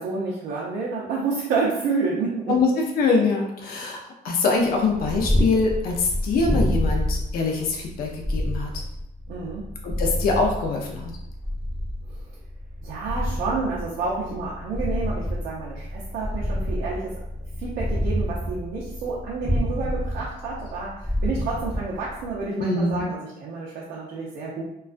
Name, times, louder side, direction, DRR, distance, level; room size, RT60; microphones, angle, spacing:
voice 1, 0.0-2.6 9.3-9.7 12.1-12.2 12.8-17.2 17.6-24.6, right 4 dB, 80° right, -5 dB, 0.6 m, -29 dB
voice 2, 2.5-4.0 4.2-8.7 9.8-11.1 22.6-23.0, left 4 dB, 60° left, 1 dB, 0.6 m, -23 dB
Purr, 4.7-22.4, equal, ahead, 0.9 m, -28 dB
2.3 x 2.2 x 2.4 m, 0.82 s
cardioid pair, 110°, 17 cm